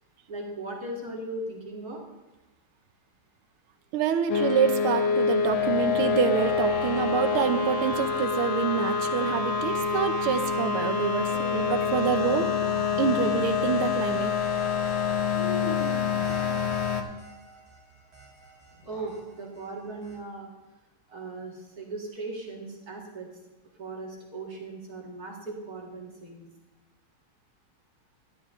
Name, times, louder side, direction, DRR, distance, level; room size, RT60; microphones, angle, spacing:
voice 1, 0.3-2.0 18.8-20.5 21.1-23.3 23.8-26.5, right 2 dB, 45° right, -2 dB, 2.3 m, -38 dB
voice 2, 3.9-12.5 13.0-14.3, right 8 dB, 80° right, 8 dB, 1.7 m, -27 dB
sound 1, 4.3-17.0, left 6 dB, 65° left, 1.5 m, -26 dB
sound 2, 11.1-13.4 15.3-17.1 18.7-19.2, left 1 dB, 35° left, 3.8 m, -40 dB
sound 3, 14.4-20.2, right 3 dB, 25° right, 3.5 m, -50 dB
12.5 x 11.5 x 3.6 m, 1.0 s
omnidirectional pair, 2.4 m